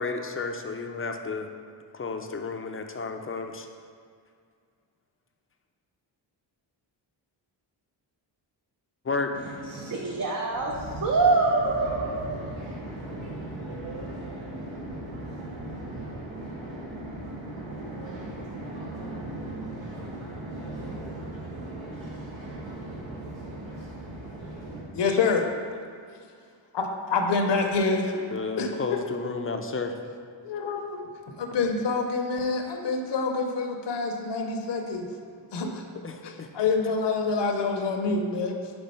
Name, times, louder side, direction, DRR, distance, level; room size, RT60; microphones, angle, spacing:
voice 1, 0.0-1.5 1.9-3.7 9.0-9.3 28.3-29.9 36.0-36.5, left 4 dB, 30° left, 5 dB, 0.5 m, -32 dB
voice 2, 9.6-12.4, right 3 dB, 40° right, -2 dB, 0.8 m, -25 dB
sound 1, 10.5-24.8, right 1 dB, 75° right, 1.5 m, -38 dB
voice 3, 24.9-25.4 26.7-28.2 28.6-29.2 30.4-31.0 31.4-35.0 35.5-35.8 36.2-38.6, left 4 dB, 60° left, 2 dB, 0.8 m, -27 dB
4.7 x 4.4 x 5.3 m, 2.2 s
cardioid pair, 65°, 48 cm